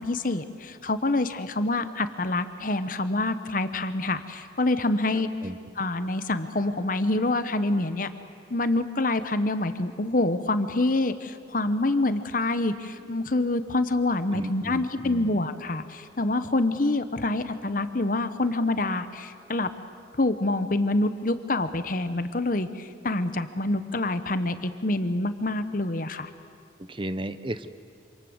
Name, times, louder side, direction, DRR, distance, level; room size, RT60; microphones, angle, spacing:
voice 1, 0.0-5.3 5.8-8.1 8.5-19.7 20.2-26.3, left 2 dB, 45° left, 11 dB, 1.0 m, -26 dB
voice 2, 5.1-5.6 14.3-15.4 26.8-27.7, right 1 dB, 25° right, 12 dB, 0.8 m, -35 dB
27.0 x 26.5 x 7.9 m, 2.3 s
head